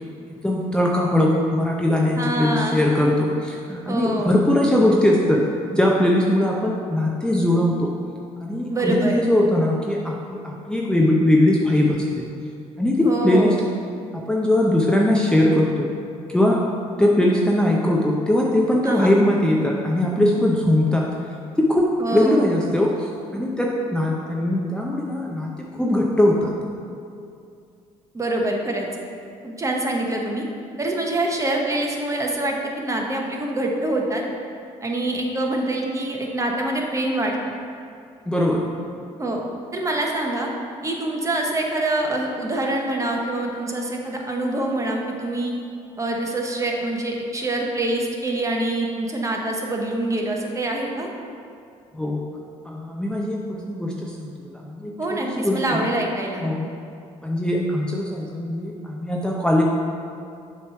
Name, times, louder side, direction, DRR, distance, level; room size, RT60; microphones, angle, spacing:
voice 1, 0.4-5.4 5.7-7.9 8.4-12.0 12.8-13.5 14.1-15.9 16.3-16.6 17.0-21.1 21.6-26.5 38.3-38.7 51.9-52.3 52.6-55.8 56.4-56.7 57.2-59.6, left 1 dB, 5° left, -2 dB, 0.6 m, -20 dB
voice 2, 2.1-3.1 3.9-4.4 8.7-9.3 13.0-13.6 18.8-19.1 22.0-22.5 28.1-28.9 29.4-30.4 30.8-34.2 34.8-37.4 39.2-39.4 39.7-40.5 40.8-45.5 46.0-51.1 55.0-56.5, right 1 dB, 20° right, 0 dB, 1.0 m, -25 dB
6.8 x 3.2 x 5.6 m, 2.5 s
supercardioid pair, 75°, 14 cm